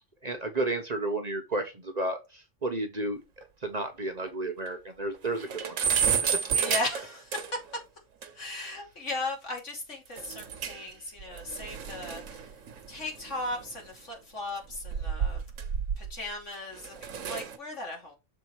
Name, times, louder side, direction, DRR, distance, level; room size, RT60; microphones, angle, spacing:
voice 1, 0.2-5.8, right 2 dB, 35° right, 1.0 m, -32 dB
sound 1, 3.4-3.5 3.8-3.9 4.3-4.4 4.7-4.8 5.1-7.7 8.2-8.3 10.2-10.9 11.2-13.9 14.6-16.3 16.7-17.6, right 7 dB, 90° right, 1.4 m, -31 dB
voice 2, 6.6-7.4 8.3-12.4 12.9-15.4 16.0-18.1, left 2 dB, 70° left, 3.0 m, -37 dB
6.7 x 4.3 x 4.6 m
omnidirectional pair, 1.3 m